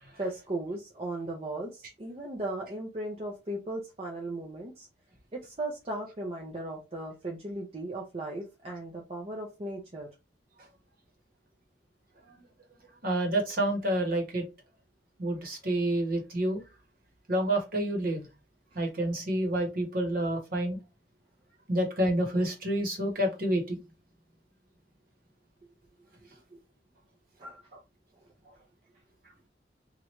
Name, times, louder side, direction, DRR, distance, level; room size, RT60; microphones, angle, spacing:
voice 1, 0.2-4.9 5.3-10.1 27.4-27.6, right 2 dB, 35° right, 0.7 m, -37 dB
voice 2, 13.0-14.4 15.2-16.6 17.3-18.3 18.7-20.8 21.7-23.8 27.7-27.8, right 1 dB, 55° right, 1.2 m, -28 dB
3.1 x 2.5 x 2.9 m
head